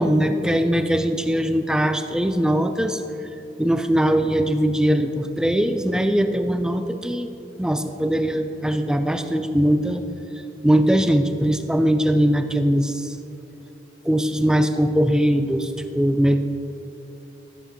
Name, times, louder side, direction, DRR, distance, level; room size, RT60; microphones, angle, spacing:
voice 1, 0.0-3.0 3.6-7.3 7.6-10.0 10.4-13.2 14.0-16.4, equal, 5° right, 7 dB, 0.3 m, -21 dB
14.0 x 7.9 x 3.0 m, 2.8 s
head